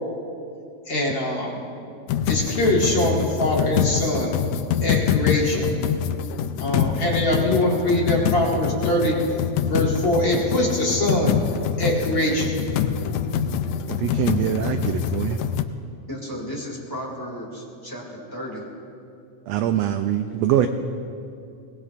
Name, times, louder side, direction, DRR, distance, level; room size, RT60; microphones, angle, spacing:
voice 1, 0.9-1.6 2.3-4.3 4.8-5.7 6.6-9.2 9.6-11.4 11.8-12.5, left 1 dB, 40° left, -4 dB, 2.4 m, -23 dB
sound 1, 2.1-15.6, left 8 dB, 80° left, 1.6 m, -25 dB
voice 2, 14.0-15.4 19.5-20.7, right 11 dB, 80° right, 7 dB, 1.5 m, -23 dB
voice 3, 16.1-18.6, equal, 10° left, -2 dB, 1.9 m, -34 dB
23.5 x 19.5 x 2.5 m, 2.6 s
omnidirectional pair, 3.5 m